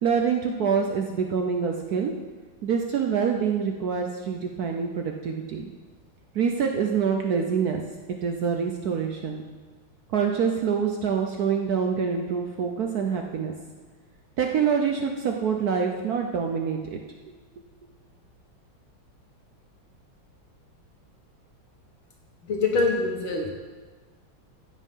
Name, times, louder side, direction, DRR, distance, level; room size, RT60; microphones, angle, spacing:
voice 1, 0.0-2.1 2.6-5.7 6.3-7.8 8.2-9.4 10.1-13.5 14.4-17.0, right 6 dB, 65° right, 3 dB, 1.0 m, -26 dB
voice 2, 22.5-23.5, left 3 dB, 75° left, 1 dB, 2.4 m, -24 dB
15.5 x 5.6 x 5.5 m, 1.4 s
omnidirectional pair, 2.3 m